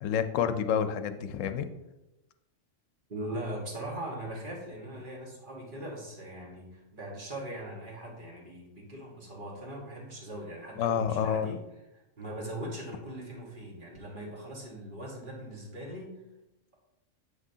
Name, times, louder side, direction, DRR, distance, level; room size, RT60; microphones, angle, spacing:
voice 1, 0.0-1.7 10.8-11.6, left 8 dB, 85° left, 10 dB, 0.9 m, -29 dB
voice 2, 3.1-11.6 12.2-16.2, right 1 dB, 40° right, -2 dB, 1.5 m, -40 dB
7.5 x 6.0 x 2.7 m, 0.95 s
omnidirectional pair, 1.3 m